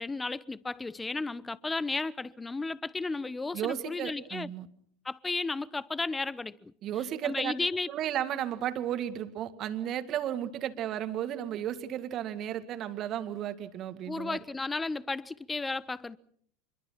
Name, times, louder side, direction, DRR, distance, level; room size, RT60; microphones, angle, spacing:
voice 1, 0.0-4.5 5.0-6.7 7.2-7.9 14.1-16.2, left 3 dB, 15° left, 0.9 m, -34 dB
voice 2, 3.5-4.7 6.8-7.5 7.9-14.4, right 11 dB, 45° right, 2.0 m, -34 dB
26.0 x 22.5 x 5.8 m
hypercardioid pair, 80°, 0 cm